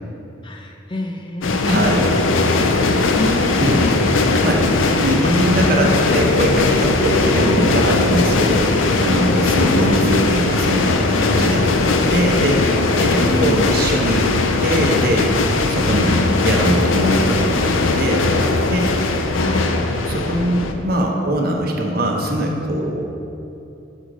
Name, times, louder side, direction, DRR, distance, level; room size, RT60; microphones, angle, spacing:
voice 1, 0.4-1.9 2.4-3.6 7.4-7.7 9.7-10.0 13.2-13.7 16.0-16.3 19.3-19.7, left 1 dB, 25° left, 3 dB, 0.4 m, -27 dB
sound 1, 1.4-20.7, left 3 dB, 85° left, 0.6 m, -18 dB
voice 2, 1.7-2.2 3.6-3.8 4.4-14.4 14.6-15.3 15.7-16.2 16.4-18.3 18.7-18.9 20.1-23.0, right 1 dB, 50° right, 0 dB, 0.9 m, -21 dB
6.4 x 6.3 x 5.1 m, 2.7 s
head